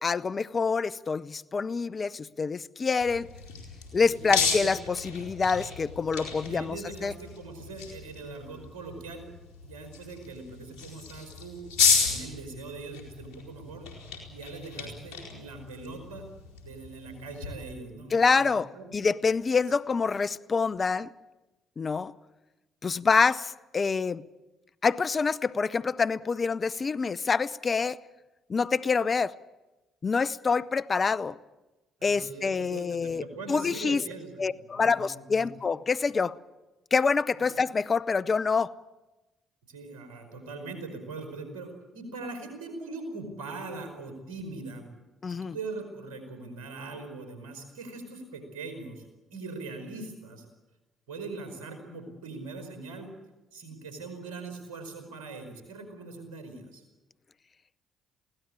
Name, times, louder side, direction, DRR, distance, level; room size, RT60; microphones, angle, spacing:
voice 1, 0.0-3.3 3.9-7.1 18.1-18.7 18.9-21.1 21.8-22.1 22.8-24.2 24.8-28.0 28.5-29.3 30.0-31.4 32.0-33.2 33.5-34.0 34.4-36.4 36.9-38.7 45.2-45.5, left 5 dB, 40° left, 0.7 m, -26 dB
sound 1, 3.0-17.5, left 5 dB, 75° left, 4.5 m, -33 dB
voice 2, 4.0-4.9 6.4-9.2 9.6-11.6 12.0-13.9 14.3-16.3 16.6-18.9 32.0-35.5 39.7-44.9 45.3-50.4 51.1-53.1 53.5-56.8, right 3 dB, 80° right, 5.0 m, -41 dB
22.5 x 17.0 x 8.8 m
hypercardioid pair, 50°, 0 cm